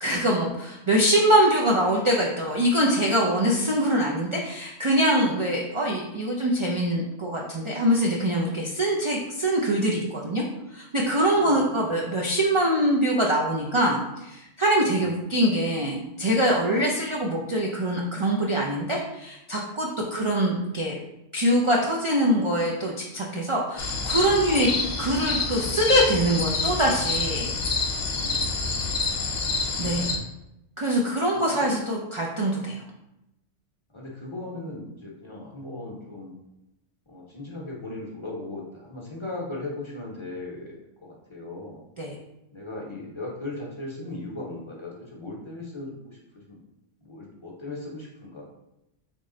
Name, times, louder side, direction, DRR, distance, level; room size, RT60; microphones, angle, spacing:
voice 1, 0.0-10.4 10.7-21.0 21.3-24.7 25.0-27.5 29.8-30.1 30.8-32.8 42.0-42.1, right 1 dB, 55° right, -2 dB, 0.3 m, -23 dB
voice 2, 11.3-11.7 14.9-15.1 20.0-20.3 28.1-29.0 29.3-29.5 31.3-31.7 33.9-36.3 37.1-41.8 42.5-46.6 47.0-48.4, left 2 dB, 30° left, -3 dB, 0.7 m, -38 dB
sound 1, 23.8-30.2, left 3 dB, 60° left, 0.8 m, -28 dB
3.6 x 3.1 x 3.7 m, 0.88 s
omnidirectional pair, 1.2 m